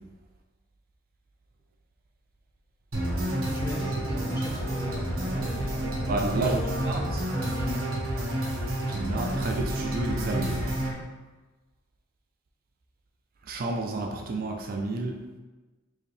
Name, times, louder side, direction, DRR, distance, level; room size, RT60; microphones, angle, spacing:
sound 1, 2.9-10.9, right 1 dB, 70° right, 1.1 m, -29 dB
voice 1, 3.4-6.1 6.4-7.9, left 2 dB, 20° left, -4 dB, 0.8 m, -39 dB
voice 2, 6.1-6.6 6.9-7.2 8.8-10.7 13.5-15.2, right 2 dB, 45° right, 2 dB, 0.4 m, -30 dB
4.7 x 2.7 x 3.2 m, 1.2 s
head